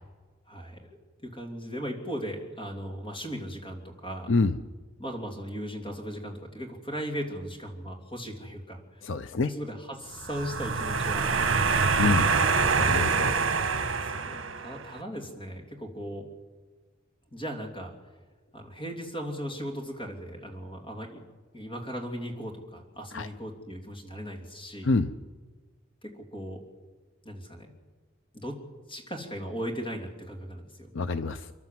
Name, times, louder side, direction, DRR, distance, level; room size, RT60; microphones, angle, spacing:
voice 1, 0.5-1.0 1.2-4.3 5.0-8.8 9.4-12.1 13.3-13.5 13.9-16.3 17.3-17.9 18.5-21.2 21.5-24.9 26.0-26.6 27.2-27.7 28.3-28.6 28.9-30.9, equal, 25° left, 2 dB, 3.0 m, -37 dB
voice 2, 4.3-4.6 9.0-9.5 12.0-12.3 12.8-13.3 23.1-23.3 24.8-25.1 30.9-31.5, left 3 dB, 70° left, 11 dB, 0.6 m, -26 dB
sound 1, 10.2-14.9, right 4 dB, 75° right, 1.3 m, -25 dB
30.0 x 12.0 x 7.6 m, 1.4 s
head